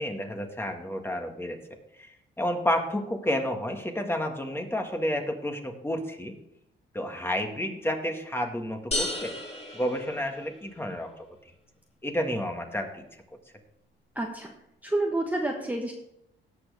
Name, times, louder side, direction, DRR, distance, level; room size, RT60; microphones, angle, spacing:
voice 1, 0.0-1.6 2.0-6.3 6.9-9.3 9.7-11.3 12.0-13.0, equal, 10° left, 4 dB, 1.7 m, -30 dB
sound 1, 8.9-10.8, left 2 dB, 30° left, 3.0 m, -33 dB
voice 2, 14.1-14.5 14.8-15.9, right 2 dB, 10° right, 1 dB, 1.2 m, -29 dB
17.5 x 6.2 x 3.5 m, 0.78 s
cardioid pair, 90°, 20 cm